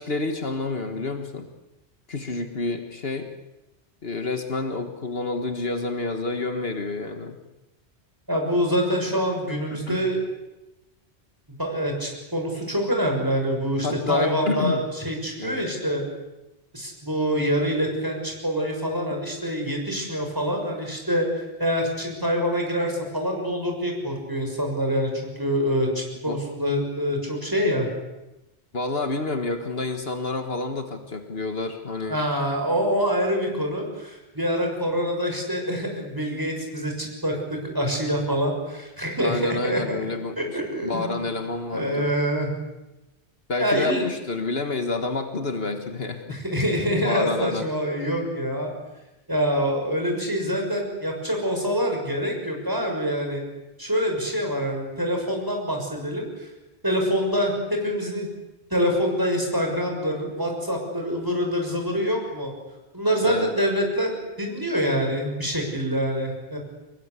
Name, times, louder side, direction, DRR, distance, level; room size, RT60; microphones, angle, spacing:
voice 1, 0.0-1.5 2.1-3.3 4.0-7.4 9.7-10.1 13.8-14.8 15.4-15.6 26.3-26.4 28.7-32.2 39.2-40.4 40.8-42.1 43.5-46.4 47.0-47.7 63.2-63.5, left 3 dB, 60° left, 6 dB, 1.8 m, -29 dB
voice 2, 8.3-10.2 11.6-16.0 16.7-27.9 32.1-40.0 40.4-41.1 41.7-42.5 43.6-44.0 46.3-48.7 49.3-53.4 53.8-56.5 56.8-58.3 58.7-62.5 62.9-66.6, equal, 20° right, 2 dB, 6.4 m, -25 dB
25.5 x 21.5 x 8.3 m, 0.98 s
omnidirectional pair, 1.1 m